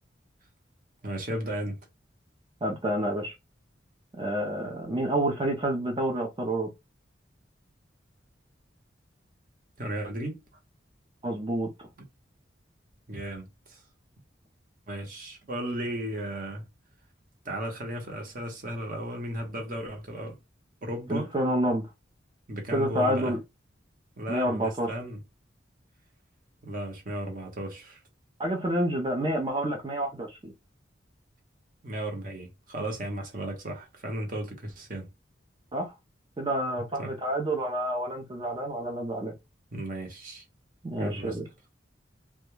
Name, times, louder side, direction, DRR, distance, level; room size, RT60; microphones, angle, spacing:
voice 1, 1.0-1.8 9.8-10.4 13.1-13.8 14.9-16.6 17.4-20.4 20.8-21.3 22.5-23.3 24.2-25.2 26.6-28.0 31.8-35.1 37.0-37.1 39.7-40.4 41.0-41.4, right 1 dB, 45° right, 0.8 m, -35 dB
voice 2, 2.6-3.3 4.2-6.7 11.2-11.7 21.1-21.8 22.7-23.4 24.3-24.9 28.4-30.5 35.7-35.9 36.4-39.3 40.8-41.4, right 1 dB, 25° right, 0.4 m, -28 dB
2.2 x 2.1 x 3.0 m
head